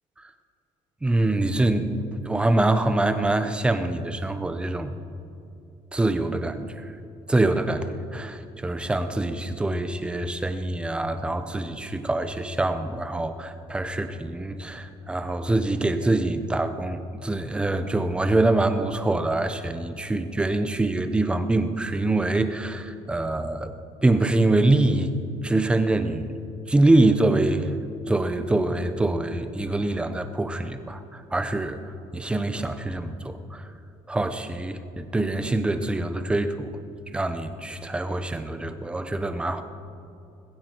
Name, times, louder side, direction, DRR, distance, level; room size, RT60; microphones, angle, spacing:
voice 1, 1.0-4.9 5.9-6.9 7.3-23.7 24.0-25.1 25.4-26.4 26.7-27.7 28.1-33.7 34.1-36.8 37.1-39.6, right 2 dB, 10° right, 9 dB, 0.7 m, -25 dB
20.5 x 16.0 x 4.5 m, 2.6 s
cardioid pair, 170°, 12 cm